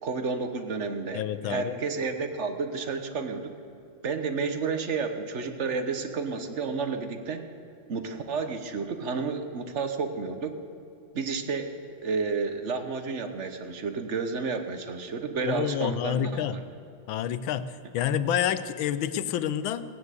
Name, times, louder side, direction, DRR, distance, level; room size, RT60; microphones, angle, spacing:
voice 1, 0.0-3.5 4.0-7.4 7.9-10.5 11.1-11.8 12.0-16.5, right 4 dB, 45° right, 7 dB, 1.1 m, -31 dB
voice 2, 1.1-1.8 15.4-16.6 17.1-17.6 17.9-19.8, left 10 dB, 85° left, 13 dB, 1.5 m, -28 dB
17.5 x 9.6 x 8.1 m, 2.6 s
omnidirectional pair, 2.2 m